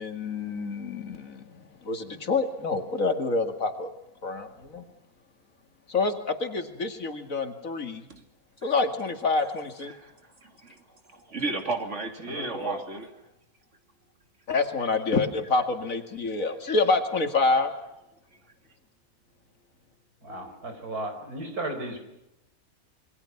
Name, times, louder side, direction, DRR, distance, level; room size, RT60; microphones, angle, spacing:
voice 1, 0.0-3.9 4.2-4.8 5.9-8.1 8.6-9.9 14.5-17.7, left 3 dB, 60° left, 2.6 m, -27 dB
voice 2, 10.4-10.8 11.1-13.1, right 3 dB, 50° right, 3.0 m, -33 dB
voice 3, 12.3-12.8 20.2-22.0, right 2 dB, 85° right, 5.1 m, -34 dB
27.5 x 23.5 x 5.9 m
omnidirectional pair, 1.6 m